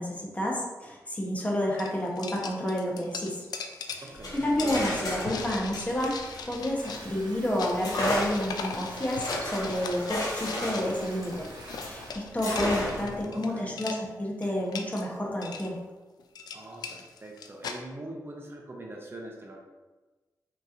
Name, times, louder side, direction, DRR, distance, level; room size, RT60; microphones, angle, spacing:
voice 1, 0.0-3.5 3.9-4.0 4.3-6.2 6.5-11.5 11.8-15.8, left 1 dB, 20° left, -2 dB, 1.0 m, -30 dB
sound 1, 1.4-1.5 1.8-13.5 13.7-14.0 14.4-15.1 15.4-15.7 16.2-17.8, left 5 dB, 85° left, 0.4 m, -40 dB
voice 2, 4.0-4.4 12.8-13.8 16.5-19.6, right 1 dB, 35° right, 0 dB, 0.7 m, -43 dB
sound 2, 4.1-7.2 7.8-12.0 12.4-13.2, left 1 dB, 70° left, 1.0 m, -33 dB
sound 3, 6.8-12.1, right 2 dB, 80° right, 0.7 m, -46 dB
5.3 x 2.9 x 2.6 m, 1.2 s
cardioid pair, 70°, 7 cm